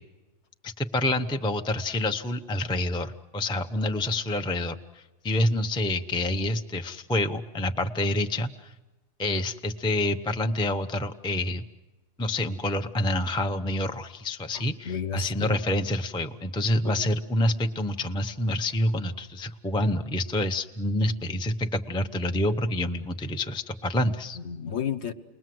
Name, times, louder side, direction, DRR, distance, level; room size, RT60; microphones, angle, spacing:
voice 1, 0.6-8.7 9.2-11.6 12.2-24.4, left 1 dB, 5° left, 5 dB, 0.5 m, -27 dB
voice 2, 14.5-15.6 16.8-17.1 24.3-25.1, left 8 dB, 55° left, 12 dB, 1.2 m, -33 dB
29.5 x 21.0 x 7.8 m, 1.2 s
omnidirectional pair, 1.5 m